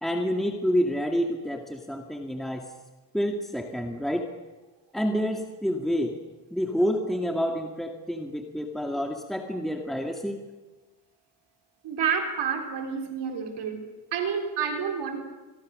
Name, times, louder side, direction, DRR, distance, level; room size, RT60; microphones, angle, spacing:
voice 1, 0.0-2.7 3.1-4.3 4.9-6.2 6.5-10.4, equal, ahead, 3 dB, 2.1 m, -28 dB
voice 2, 11.8-13.8 14.1-15.2, right 6 dB, 85° right, 4 dB, 4.0 m, -29 dB
27.0 x 23.0 x 6.6 m, 1.2 s
cardioid pair, 100°, 40 cm